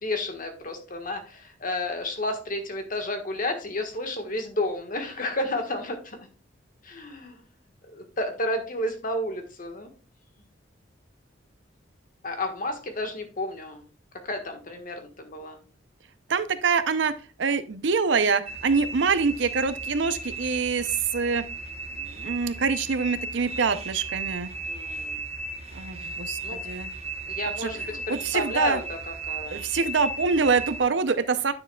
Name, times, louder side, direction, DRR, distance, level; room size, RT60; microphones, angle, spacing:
voice 1, 0.0-6.2 6.8-7.4 7.9-9.9 12.2-13.8 14.2-15.6 24.7-25.2 26.0-26.1 26.4-26.6 27.3-29.6, left 1 dB, 45° left, 5 dB, 1.5 m, -31 dB
voice 2, 16.3-21.4 22.0-24.5 25.7-26.9 27.6-28.8 29.4-31.5, right 5 dB, 75° right, 13 dB, 0.6 m, -25 dB
sound 1, 18.5-30.8, right 3 dB, 35° right, 1.1 m, -35 dB
9.6 x 6.7 x 2.3 m, 0.34 s
head